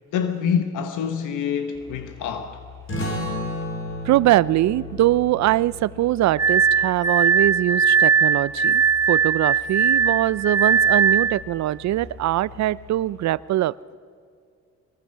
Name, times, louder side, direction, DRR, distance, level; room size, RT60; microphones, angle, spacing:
voice 1, 0.1-2.6, left 7 dB, 85° left, 1.2 m, -26 dB
sound 1, 1.7-13.2, left 7 dB, 10° left, 4.9 m, -45 dB
sound 2, 2.9-8.1, left 1 dB, 45° left, 4.6 m, -34 dB
voice 2, 4.1-8.8 9.1-14.0, right 15 dB, 65° right, 0.5 m, -22 dB
Glass, 6.4-11.4, right 6 dB, 10° right, 1.8 m, -19 dB
22.0 x 20.5 x 5.6 m
cardioid pair, 90°, 30 cm